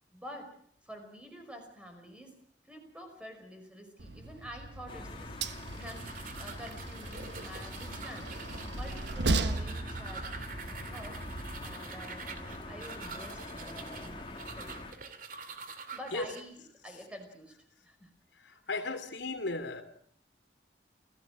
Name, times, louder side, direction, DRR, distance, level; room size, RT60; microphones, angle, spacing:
voice 1, 0.1-0.5 0.8-2.4 2.6-5.3 5.8-8.3 8.6-10.6 10.9-11.2 11.6-14.7 15.9-17.5 17.8-18.1 18.6-18.9, equal, 5° right, 4 dB, 5.5 m, -48 dB
Train, 4.0-11.7, right 2 dB, 75° right, 1.3 m, -37 dB
sound 1, 4.9-14.9, left 2 dB, 30° left, 3.3 m, -45 dB
sound 2, 5.4-16.4, right 5 dB, 50° right, 2.4 m, -46 dB
voice 2, 18.7-19.8, left 3 dB, 85° left, 7 dB, 2.9 m, -34 dB
29.0 x 16.5 x 6.2 m, 0.62 s
head